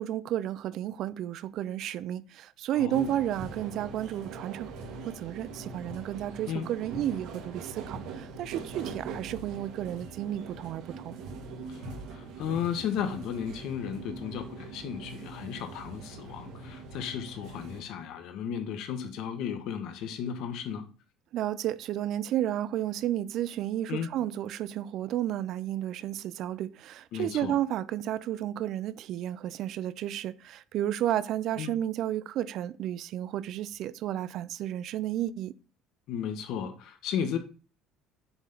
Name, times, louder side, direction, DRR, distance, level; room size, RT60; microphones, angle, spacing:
voice 1, 0.0-4.7 5.1-11.2 21.3-35.6, right 12 dB, 50° right, 0.4 m, -32 dB
voice 2, 2.7-3.2 6.5-6.7 11.7-20.9 23.9-24.1 27.1-27.6 31.6-31.7 36.1-37.4, left 8 dB, 60° left, 1.3 m, -34 dB
sound 1, 2.9-17.8, right 4 dB, 70° right, 2.0 m, -42 dB
6.9 x 3.8 x 5.8 m
cardioid pair, 150°, 0 cm